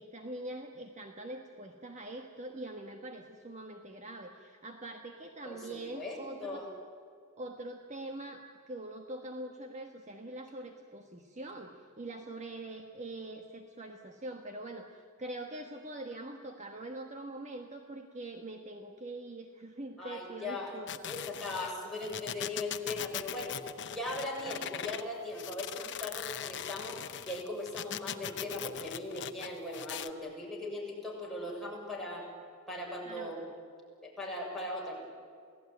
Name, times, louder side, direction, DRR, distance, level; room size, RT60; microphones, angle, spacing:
voice 1, 0.0-6.6 7.4-21.1 33.1-33.5, right 1 dB, 30° right, 4 dB, 1.4 m, -43 dB
voice 2, 5.4-6.7 20.0-20.7 21.0-23.6 23.9-32.3 32.7-33.4 34.0-35.0, left 2 dB, ahead, -3 dB, 6.8 m, -39 dB
sound 1, 20.9-25.0 25.3-30.1, left 9 dB, 55° left, 1.0 m, -40 dB
28.0 x 18.0 x 9.4 m, 2.2 s
head